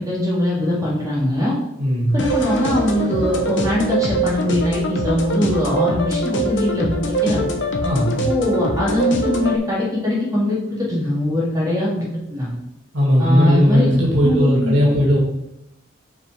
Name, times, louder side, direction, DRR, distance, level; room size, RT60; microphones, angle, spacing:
voice 1, 0.0-1.6 2.1-7.5 8.2-12.6 13.2-13.9 14.2-14.9, left 1 dB, 20° right, -6 dB, 2.1 m, -21 dB
voice 2, 1.8-2.2 7.8-8.3 12.9-15.2, equal, 85° right, -5 dB, 2.4 m, -17 dB
sound 1, 2.2-9.6, right 1 dB, 65° left, 0.9 m, -23 dB
5.3 x 5.2 x 4.6 m, 0.82 s
head